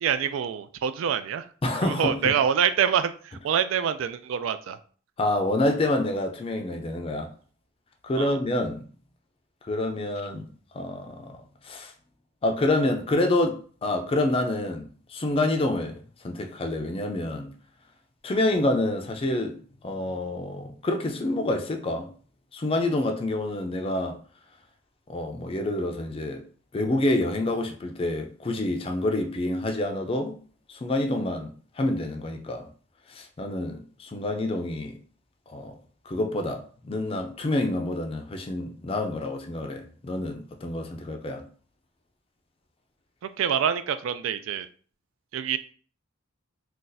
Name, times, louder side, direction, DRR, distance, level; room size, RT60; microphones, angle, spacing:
voice 1, 0.0-1.5 1.8-4.8 8.2-8.4 43.4-44.7 45.3-45.6, right 8 dB, 70° right, 0.3 m, -26 dB
voice 2, 1.6-2.3 5.2-7.3 8.0-8.8 9.6-10.5 10.7-11.4 11.6-11.9 12.4-16.0 16.2-17.5 18.2-22.1 22.5-24.2 25.1-26.4 26.7-30.4 30.7-32.7 33.1-35.0 35.5-35.7 36.1-41.4, left 1 dB, 30° left, 0.4 m, -27 dB
2.5 x 2.3 x 3.9 m
head